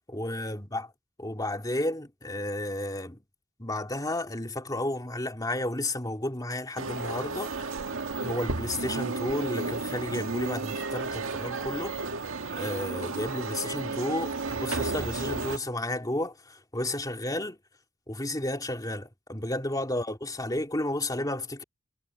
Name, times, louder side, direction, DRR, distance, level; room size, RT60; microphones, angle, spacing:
voice 1, 0.1-0.9 1.2-3.2 3.6-7.7 8.2-12.0 12.5-17.6 18.1-21.6, left 1 dB, 20° left, 2.8 m, -32 dB
sound 1, 6.8-15.6, right 3 dB, 80° right, 1.9 m, -33 dB
head